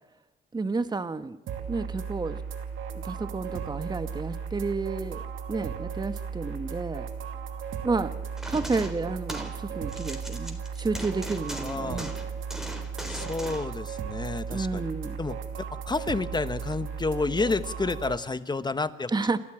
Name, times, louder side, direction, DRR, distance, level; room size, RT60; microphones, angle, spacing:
voice 1, 0.5-1.4 1.7-2.4 3.0-5.2 5.5-7.1 7.8-8.2 8.5-12.1 14.5-15.2 19.1-19.4, right 3 dB, 20° right, 11 dB, 1.2 m, -31 dB
sound 1, 1.5-18.2, right 6 dB, 80° right, 2.5 m, -36 dB
sound 2, 8.4-9.6 9.9-13.7, equal, ahead, 3.7 m, -39 dB
voice 2, 11.6-12.1 13.1-14.9 15.2-15.4 15.9-19.1, left 3 dB, 20° left, 13 dB, 1.2 m, -30 dB
29.0 x 13.0 x 8.8 m, 0.93 s
cardioid pair, 90°, 20 cm